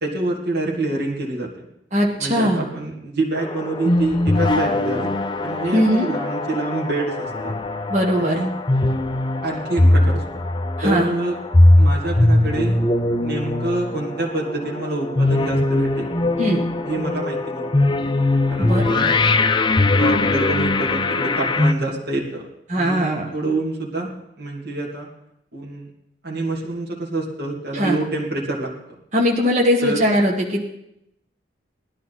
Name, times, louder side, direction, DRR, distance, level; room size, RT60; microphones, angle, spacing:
voice 1, 0.0-1.7 2.2-5.1 5.4-7.6 8.2-8.5 9.4-10.2 10.8-11.4 11.8-12.8 13.2-16.1 16.8-17.9 18.5-19.2 19.8-22.5 22.7-25.1 25.5-25.9 26.2-28.7 29.8-30.0, right 2 dB, 55° right, -3 dB, 2.6 m, -27 dB
voice 2, 1.9-2.6 5.7-6.1 7.9-8.4 10.8-11.1 16.4-16.6 18.6-19.1 22.7-23.3 27.7-28.0 29.1-30.6, equal, 40° right, -1 dB, 1.6 m, -20 dB
sound 1, 3.4-21.7, left 2 dB, 25° left, 0.6 m, -20 dB
19.0 x 11.5 x 4.2 m, 0.80 s
head